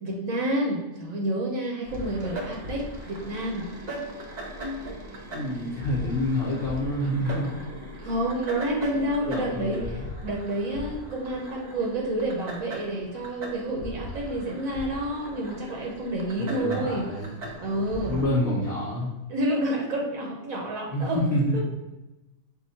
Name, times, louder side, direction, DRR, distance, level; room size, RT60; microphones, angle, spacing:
voice 1, 0.0-3.7 8.0-9.8 10.2-17.1 17.6-18.2 19.3-21.2 21.5-21.7, right 1 dB, 75° right, 0 dB, 1.1 m, -29 dB
sound 1, 1.9-18.2, equal, 45° right, 0.5 m, -38 dB
voice 2, 5.3-7.5 8.9-10.1 16.4-17.3 18.0-19.1 20.9-21.6, left 1 dB, 55° left, -6 dB, 1.0 m, -28 dB
4.9 x 2.1 x 4.0 m, 1.0 s
omnidirectional pair, 1.5 m